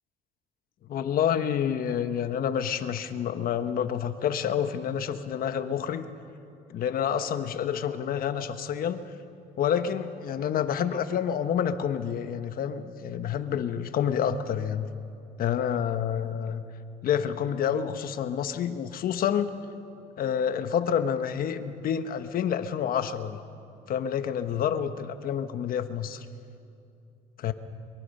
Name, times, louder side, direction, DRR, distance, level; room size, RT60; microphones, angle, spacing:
voice 1, 0.9-6.1 6.7-9.1 9.6-14.9 15.4-16.7 17.0-19.5 20.2-23.4 23.9-26.3 27.4-27.5, left 8 dB, 60° left, 10 dB, 1.1 m, -28 dB
23.5 x 23.0 x 5.5 m, 2.5 s
cardioid pair, 110°, 17 cm